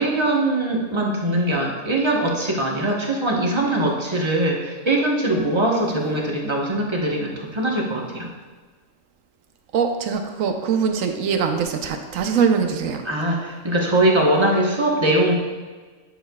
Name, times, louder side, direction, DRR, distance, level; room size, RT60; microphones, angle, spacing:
voice 1, 0.0-8.3 13.0-15.4, right 1 dB, 25° right, -2 dB, 1.0 m, -21 dB
voice 2, 9.7-13.0, right 6 dB, 80° right, 5 dB, 1.1 m, -22 dB
10.0 x 6.4 x 2.3 m, 1.4 s
omnidirectional pair, 1.4 m